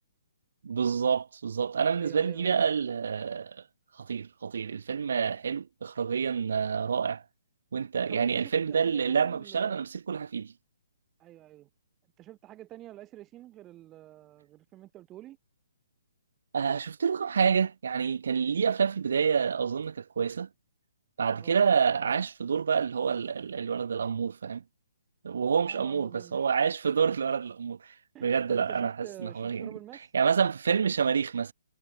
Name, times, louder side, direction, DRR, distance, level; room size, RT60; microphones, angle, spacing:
voice 1, 0.6-3.6 4.0-7.2 7.7-10.5 16.5-20.5 21.2-24.6 25.2-27.8 28.2-28.9 29.2-29.7 30.1-31.5, right 6 dB, 70° right, 4.1 m, -28 dB
voice 2, 1.9-2.6 8.1-9.8 11.2-11.7 12.2-15.4 21.4-21.5 25.6-26.5 28.1-30.1, right 14 dB, 15° right, 6.0 m, -48 dB
hypercardioid pair, 165°, 0 cm